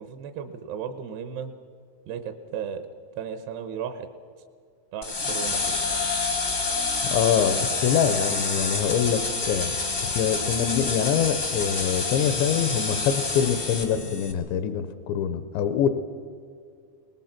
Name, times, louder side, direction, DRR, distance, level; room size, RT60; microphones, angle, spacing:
voice 1, 0.0-1.5 2.1-2.9 3.2-4.1 4.9-5.8, right 7 dB, 75° right, 8 dB, 2.8 m, -35 dB
sound 1, 5.0-14.3, left 3 dB, 55° left, 0.8 m, -28 dB
voice 2, 7.1-9.7 10.0-15.9, left 8 dB, 80° left, 10 dB, 3.0 m, -24 dB
24.0 x 19.5 x 5.9 m, 2.2 s
omnidirectional pair, 5.3 m